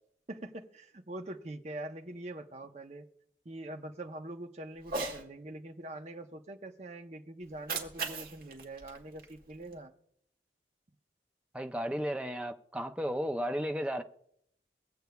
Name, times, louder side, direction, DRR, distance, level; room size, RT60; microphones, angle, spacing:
voice 1, 0.3-3.1 3.4-9.9, right 1 dB, 40° right, 0.8 m, -44 dB
Cat, 4.8-5.2 7.4-9.8, right 3 dB, 55° right, 1.5 m, -39 dB
voice 2, 11.5-14.0, equal, 5° right, 0.5 m, -34 dB
23.5 x 7.9 x 2.3 m
head